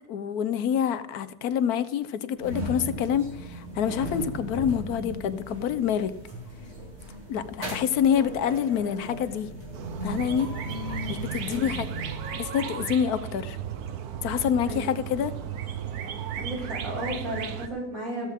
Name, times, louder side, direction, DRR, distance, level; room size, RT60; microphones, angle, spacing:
voice 1, 0.1-6.1 7.3-9.5 10.0-10.5 11.1-11.9 12.4-13.6 14.2-15.3, left 8 dB, 85° left, 13 dB, 1.3 m, -27 dB
sound 1, 2.4-12.5, equal, 45° right, 3.0 m, -37 dB
sound 2, 9.7-17.7, right 8 dB, 85° right, 1.5 m, -35 dB
voice 2, 16.4-18.3, right 1 dB, 70° right, -4 dB, 6.7 m, -34 dB
14.0 x 14.0 x 3.6 m, 0.85 s
omnidirectional pair, 1.6 m